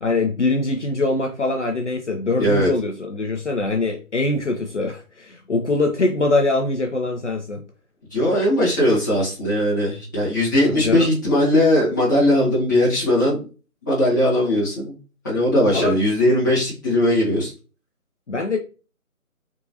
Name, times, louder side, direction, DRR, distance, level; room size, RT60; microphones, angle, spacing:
voice 1, 0.0-7.6 10.6-11.1 15.7-16.0 18.3-18.6, left 2 dB, 50° left, 3 dB, 0.6 m, -23 dB
voice 2, 2.4-2.7 8.1-13.4 13.8-14.9 15.2-17.5, left 1 dB, 15° left, -9 dB, 1.1 m, -19 dB
4.5 x 3.5 x 2.7 m, 0.34 s
figure-of-eight pair, 170°, 44 cm